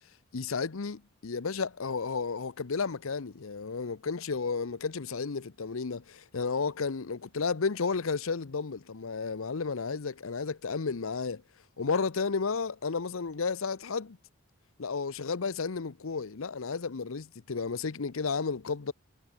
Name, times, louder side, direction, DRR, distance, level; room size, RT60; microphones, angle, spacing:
voice 1, 0.3-11.4 11.8-14.2 14.8-18.9, left 4 dB, 80° left, 0.7 m, -32 dB
head